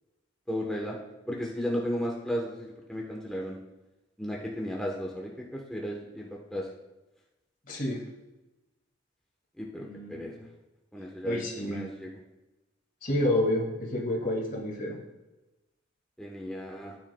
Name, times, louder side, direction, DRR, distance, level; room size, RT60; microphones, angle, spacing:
voice 1, 0.5-1.0 1.3-3.6 4.2-6.7 9.6-10.3 10.9-12.1 16.2-16.9, equal, 5° left, -2 dB, 0.9 m, -34 dB
voice 2, 7.7-8.0 9.8-10.5 11.2-11.8 13.0-15.0, left 1 dB, 40° left, -1 dB, 2.0 m, -29 dB
13.0 x 9.3 x 2.2 m, 1.0 s
head